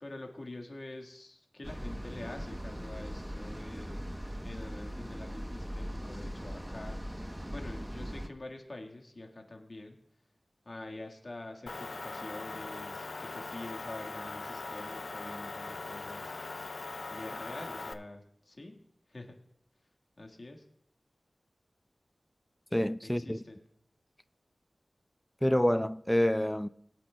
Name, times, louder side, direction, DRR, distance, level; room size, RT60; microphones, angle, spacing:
voice 1, 0.0-4.0 4.4-7.0 7.5-10.0 10.6-16.3 17.1-18.8 19.1-19.4 20.2-20.6 23.0-23.6, left 2 dB, 50° left, 1.6 m, -46 dB
sound 1, 1.6-8.3, equal, 15° right, 0.9 m, -40 dB
Motor vehicle (road) / Engine, 11.7-17.9, left 3 dB, 70° left, 0.5 m, -41 dB
voice 2, 22.7-23.4 25.4-26.7, equal, 10° left, 0.4 m, -27 dB
22.0 x 8.3 x 2.2 m
wide cardioid pair, 55°, 0 cm